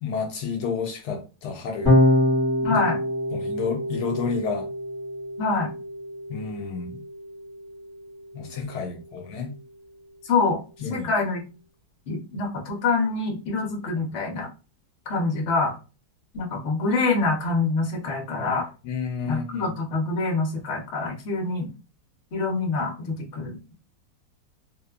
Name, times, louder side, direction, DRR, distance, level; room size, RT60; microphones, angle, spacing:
voice 1, 0.0-2.0 2.7-2.8 3.3-4.7 6.3-7.0 8.3-9.5 10.8-11.1 14.1-14.2 18.8-19.7, left 5 dB, 75° left, 4 dB, 1.1 m, -30 dB
Electric guitar / Bass guitar, 1.8-8.2, left 1 dB, 10° right, 0.9 m, -25 dB
voice 2, 2.6-3.0 5.4-5.7 10.2-10.6 10.9-11.5 12.1-14.5 15.1-15.7 16.3-18.7 19.3-21.7 22.3-23.7, left 3 dB, 55° left, 0 dB, 0.9 m, -25 dB
2.9 x 2.1 x 2.3 m, 0.33 s
omnidirectional pair, 1.7 m